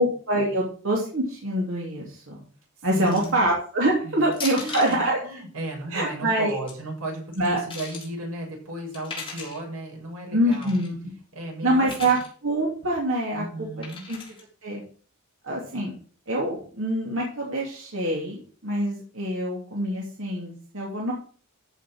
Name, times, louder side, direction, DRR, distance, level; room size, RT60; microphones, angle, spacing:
voice 1, 0.0-2.4 2.8-5.2 5.9-6.6 7.4-7.6 10.3-11.1 11.6-12.2 12.4-13.4 14.1-14.2 14.6-14.8 15.4-15.9 16.3-21.1, right 1 dB, 60° right, -2 dB, 3.0 m, -25 dB
voice 2, 2.9-3.4 4.0-4.3 4.5-10.8 11.3-12.0 13.3-14.1, right 1 dB, 90° right, -1 dB, 6.7 m, -35 dB
sound 1, 3.1-3.4 4.3-5.0 6.4-6.7 7.3-8.1 8.9-9.6 10.5-10.9 11.8-12.3 13.8-14.4, left 4 dB, 25° left, 4.6 m, -37 dB
14.5 x 6.4 x 6.2 m, 0.43 s
head